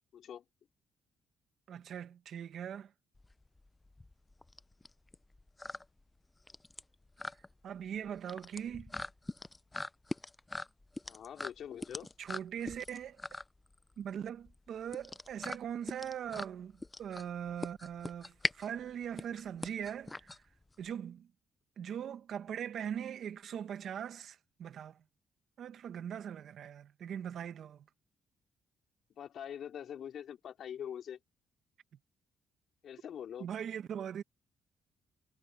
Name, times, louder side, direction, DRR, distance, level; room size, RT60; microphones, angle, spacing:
voice 1, 0.1-0.4 11.0-12.1 29.2-31.2 32.8-33.5, left 9 dB, 65° left, 3.4 m, -44 dB
voice 2, 1.7-2.9 7.6-8.9 12.2-13.2 14.0-20.4 20.8-21.3 21.8-25.0 25.6-27.9 33.4-34.2, right 9 dB, 65° right, 0.9 m, -41 dB
sound 1, 3.1-20.9, left 2 dB, 15° left, 0.4 m, -43 dB
cardioid pair, 90°, 0 cm